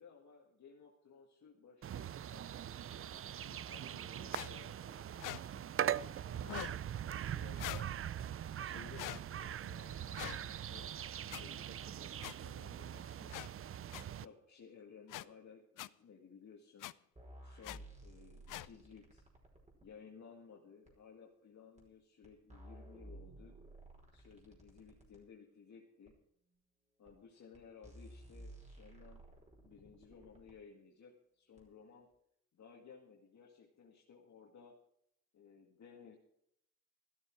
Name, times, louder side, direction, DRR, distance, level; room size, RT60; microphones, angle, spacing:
voice 1, 0.0-7.9 8.6-13.3 14.1-16.9 17.4-19.3 19.8-23.6 24.1-26.1 27.0-29.2 29.6-32.1 32.5-34.7 35.3-36.2, left 6 dB, 65° left, -1 dB, 2.0 m, -58 dB
sound 1, 1.8-14.2, right 10 dB, 45° right, 0.5 m, -42 dB
sound 2, 4.3-4.5 5.2-5.4 6.4-6.8 7.6-7.9 8.9-9.2 10.1-10.4 11.3-11.4 12.2-12.3 13.3-13.5 13.9-14.0 15.1-15.2 15.8-15.9 16.8-16.9 17.6-17.8 18.5-18.7, left 15 dB, 80° left, 0.5 m, -43 dB
sound 3, 17.2-19.9 20.9-21.0 21.8-21.9 22.2-25.2 26.1-26.2 27.1-27.2 27.5-27.6 27.8-30.6 31.6-31.7, right 1 dB, 20° right, 5.2 m, -55 dB
14.0 x 12.5 x 4.6 m, 0.74 s
cardioid pair, 80°, 31 cm